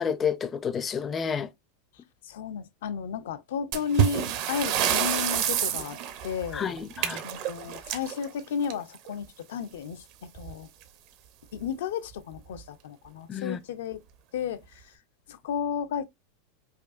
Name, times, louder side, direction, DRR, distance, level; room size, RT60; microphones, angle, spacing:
voice 1, 0.0-1.5 6.5-7.2 13.3-13.6, left 7 dB, 20° left, 0.4 m, -30 dB
voice 2, 2.2-6.0 6.2-6.7 7.2-10.7 11.5-14.0 14.3-14.6 15.3-16.1, left 7 dB, 80° left, 0.5 m, -33 dB
sound 1, 3.7-9.1 10.4-10.5 10.8-10.9 11.6-11.7 12.3-12.6, right 10 dB, 55° right, 0.6 m, -28 dB
4.9 x 2.4 x 2.4 m
supercardioid pair, 135°, 0 cm